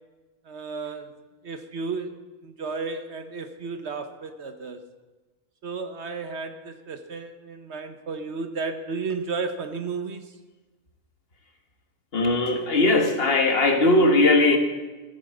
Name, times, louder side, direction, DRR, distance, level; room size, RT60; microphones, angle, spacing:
voice 1, 0.4-1.1 1.4-2.1 2.4-4.8 5.6-10.2, right 4 dB, 50° right, 9 dB, 1.1 m, -33 dB
voice 2, 12.1-14.6, left 2 dB, 40° left, 5 dB, 1.7 m, -19 dB
14.5 x 8.7 x 7.7 m, 1.2 s
omnidirectional pair, 1.6 m